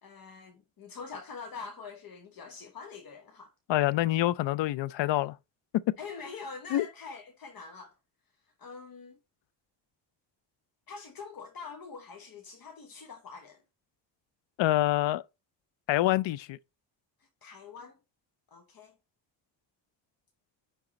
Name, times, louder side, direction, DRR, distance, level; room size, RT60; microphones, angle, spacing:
voice 1, 0.0-3.5 6.0-7.9 8.6-9.2 10.9-13.6 17.4-18.0 18.5-18.9, left 5 dB, 50° left, 1.1 m, -44 dB
voice 2, 3.7-5.4 6.7-6.9 14.6-15.2 15.9-16.6, left 15 dB, 75° left, 0.6 m, -26 dB
10.0 x 3.6 x 4.1 m
cardioid pair, 135°, 44 cm